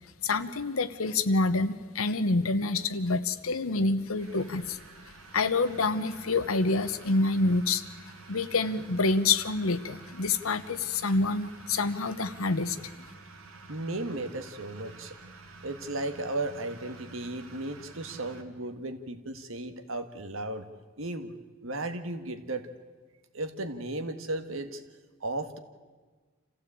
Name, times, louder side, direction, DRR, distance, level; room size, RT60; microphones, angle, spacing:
voice 1, 0.2-4.8 5.3-7.8 8.3-12.9, left 3 dB, 80° left, 13 dB, 1.0 m, -27 dB
sound 1, 4.1-18.4, right 3 dB, 90° right, 2.3 m, -49 dB
voice 2, 13.7-15.1 15.6-20.7 21.0-21.3 21.6-22.7 23.3-24.8 25.2-25.6, right 2 dB, 65° right, 8 dB, 1.6 m, -35 dB
27.0 x 15.5 x 8.6 m, 1.4 s
head